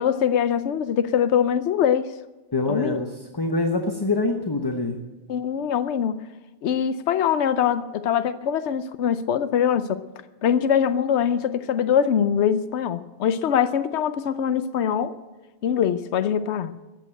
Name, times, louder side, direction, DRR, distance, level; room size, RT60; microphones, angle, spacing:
voice 1, 0.0-2.1 2.7-3.0 5.3-6.1 6.6-10.0 10.4-15.1 15.6-16.8, left 8 dB, 90° left, 12 dB, 0.9 m, -23 dB
voice 2, 2.5-5.0, left 2 dB, 25° left, 5 dB, 1.0 m, -25 dB
14.0 x 9.0 x 8.9 m, 1.2 s
omnidirectional pair, 1.1 m